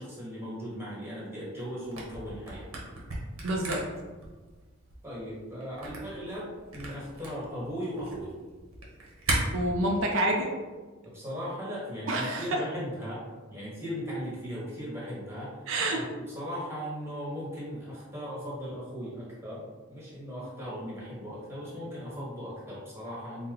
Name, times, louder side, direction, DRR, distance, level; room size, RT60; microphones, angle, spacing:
voice 1, 0.0-2.7 5.0-8.3 11.0-15.6 15.9-23.5, equal, 10° right, -7 dB, 1.3 m, -38 dB
Camera, 1.8-9.4, right 2 dB, 90° right, 1.0 m, -37 dB
voice 2, 3.4-3.8 9.5-10.5 12.1-12.6 15.7-16.0, right 1 dB, 65° right, 1 dB, 0.4 m, -28 dB
4.3 x 2.1 x 3.8 m, 1.3 s
head